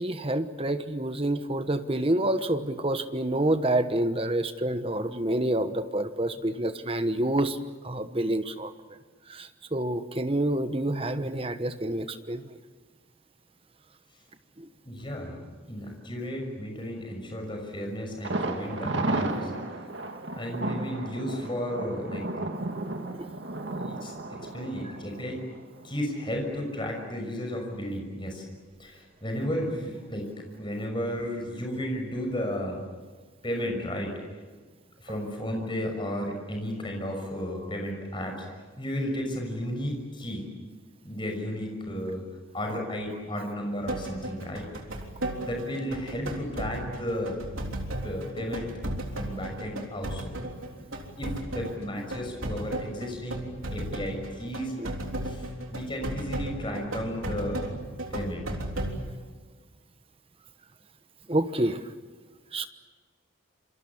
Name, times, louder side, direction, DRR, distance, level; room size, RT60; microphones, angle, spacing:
voice 1, 0.0-7.6 7.8-8.7 9.3-12.4 14.6-14.7 54.8-54.9 61.3-61.8 62.5-62.7, right 1 dB, 25° right, 10 dB, 1.2 m, -28 dB
voice 2, 14.8-15.4 15.7-19.5 20.3-22.3 23.8-25.4 25.8-28.4 28.8-30.3 30.6-32.8 33.4-34.1 35.0-38.4 38.8-40.4 41.0-42.2 42.5-44.7 45.4-47.4 48.0-48.7 49.1-50.4 51.2-54.7 55.2-57.6 58.1-58.5, equal, 25° left, 2 dB, 6.1 m, -33 dB
Thunder, 18.2-26.0 26.3-26.4 26.8-26.9, right 2 dB, 60° right, 2.2 m, -33 dB
sound 1, 43.9-58.9, right 1 dB, 85° right, 3.6 m, -35 dB
27.5 x 24.5 x 7.3 m, 1.4 s
head